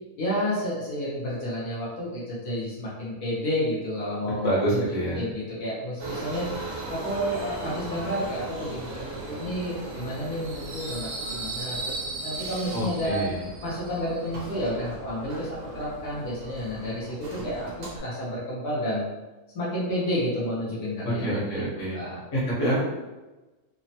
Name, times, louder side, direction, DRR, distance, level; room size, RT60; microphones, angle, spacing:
voice 1, 0.2-4.8 5.2-6.5 6.9-13.2 13.6-19.1 19.5-21.6 21.9-22.2, equal, 85° left, -8 dB, 1.4 m, -30 dB
voice 2, 4.2-5.2 12.7-13.4 21.0-22.0 22.3-22.8, right 1 dB, 65° left, -7 dB, 1.4 m, -27 dB
Subway metro underground, 6.0-18.0, right 2 dB, 70° right, 1.1 m, -37 dB
3.4 x 2.0 x 2.7 m, 1.1 s
omnidirectional pair, 1.6 m